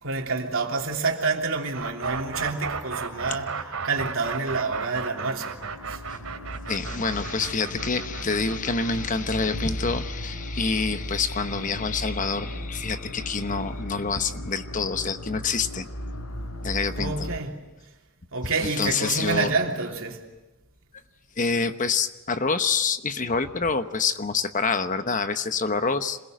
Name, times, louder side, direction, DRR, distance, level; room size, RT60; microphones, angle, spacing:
voice 1, 0.0-5.6 5.9-6.0 16.9-17.5 18.3-20.2, right 4 dB, 65° right, 3.2 m, -28 dB
sound 1, 1.7-11.6, right 5 dB, 90° right, 2.5 m, -35 dB
sound 2, 5.5-17.4, left 1 dB, 85° left, 3.0 m, -36 dB
voice 2, 6.7-15.9 16.6-17.3 18.4-19.5 21.4-26.2, left 4 dB, 35° left, 1.0 m, -27 dB
27.0 x 21.5 x 9.2 m
head